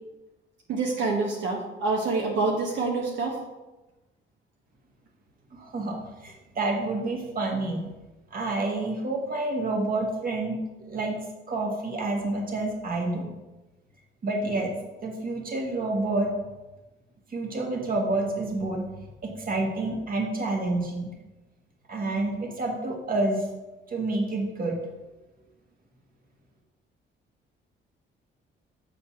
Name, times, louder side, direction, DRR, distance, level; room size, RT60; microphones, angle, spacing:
voice 1, 0.7-3.3, right 3 dB, 75° right, -2 dB, 1.3 m, -26 dB
voice 2, 5.5-6.0 6.2-7.8 8.3-10.6 10.8-11.2 11.5-13.3 14.2-14.8 15.0-16.3 17.3-18.8 19.2-21.1 21.9-23.5 23.9-24.8, right 2 dB, 45° right, 0 dB, 1.7 m, -28 dB
7.1 x 4.1 x 5.8 m, 1.1 s
cardioid pair, 90°, 20 cm